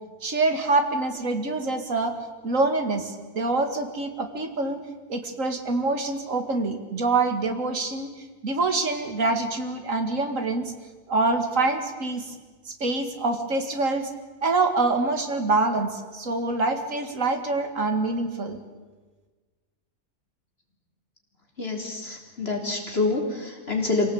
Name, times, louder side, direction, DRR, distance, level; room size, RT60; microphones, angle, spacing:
voice 1, 0.2-2.1 2.4-4.8 5.1-8.1 8.4-10.7 11.1-12.4 12.7-14.1 14.4-18.6, right 3 dB, 60° right, 6 dB, 2.5 m, -25 dB
voice 2, 21.6-24.1, left 3 dB, 40° left, 1 dB, 4.0 m, -27 dB
25.0 x 18.0 x 8.6 m, 1.3 s
omnidirectional pair, 1.6 m